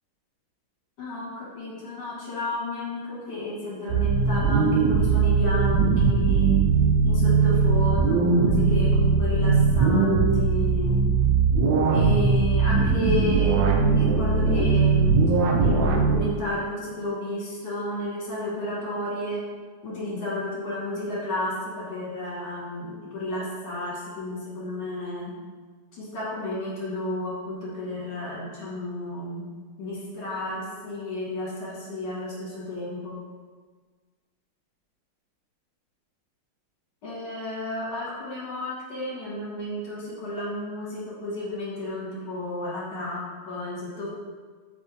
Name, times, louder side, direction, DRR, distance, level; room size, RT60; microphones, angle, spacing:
voice 1, 1.0-6.6 7.0-11.0 11.9-15.2 15.6-19.4 19.8-25.3 25.9-29.4 29.8-33.2 37.0-44.1, left 1 dB, 60° left, -6 dB, 1.8 m, -32 dB
sound 1, 3.9-16.2, right 4 dB, 75° right, 1.2 m, -20 dB
3.9 x 3.6 x 3.4 m, 1.5 s
omnidirectional pair, 2.3 m